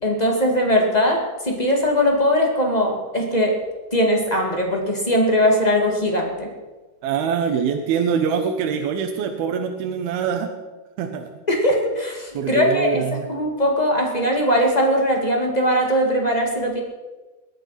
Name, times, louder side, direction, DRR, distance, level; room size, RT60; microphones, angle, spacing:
voice 1, 0.0-3.6 3.9-6.5 11.5-16.8, equal, 20° left, 1 dB, 1.1 m, -20 dB
voice 2, 7.0-10.5 11.0-11.3 12.3-13.2, right 6 dB, 75° right, 4 dB, 2.9 m, -24 dB
21.0 x 9.2 x 5.8 m, 1.2 s
omnidirectional pair, 4.5 m